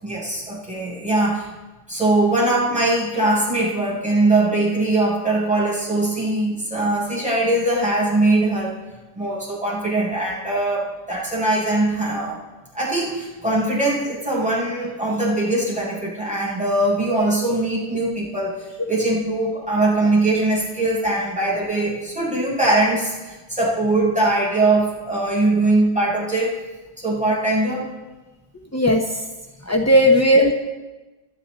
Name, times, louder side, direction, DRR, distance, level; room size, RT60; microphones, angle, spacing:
voice 1, 0.0-1.5 1.9-8.7 9.1-12.4 12.7-26.5 27.0-27.9 29.8-30.0, right 2 dB, 5° right, -8 dB, 7.1 m, -21 dB
voice 2, 28.7-29.1 29.7-30.5, equal, 15° left, 1 dB, 0.5 m, -15 dB
29.0 x 11.0 x 4.1 m, 1.2 s
omnidirectional pair, 2.0 m